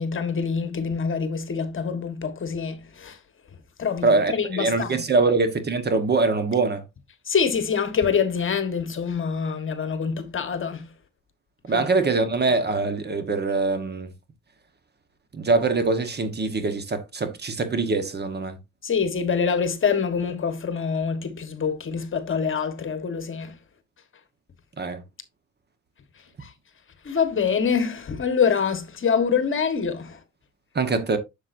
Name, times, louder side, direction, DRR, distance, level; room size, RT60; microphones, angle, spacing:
voice 1, 0.0-3.2 3.8-5.0 7.3-10.9 11.7-11.9 18.8-23.6 26.4-26.5 27.0-30.2, left 6 dB, 40° left, 1.4 m, -25 dB
voice 2, 4.0-6.8 11.6-14.1 15.3-18.6 24.8-25.0 30.7-31.2, right 3 dB, 35° right, 1.2 m, -23 dB
7.3 x 6.9 x 2.6 m
cardioid pair, 90°, 30 cm